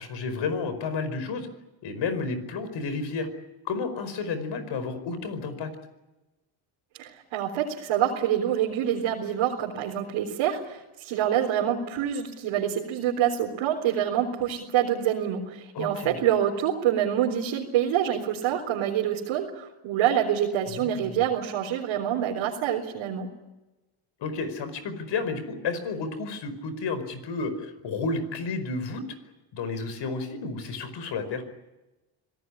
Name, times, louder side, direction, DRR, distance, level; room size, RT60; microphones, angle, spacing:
voice 1, 0.0-1.5 1.8-3.3 3.6-5.7 15.7-16.2 20.7-21.2 24.2-29.0 29.5-31.4, left 4 dB, 60° left, 12 dB, 5.1 m, -31 dB
voice 2, 7.0-23.3, right 10 dB, 75° right, -2 dB, 4.0 m, -26 dB
25.5 x 18.0 x 10.0 m, 1.0 s
cardioid pair, 100°, 49 cm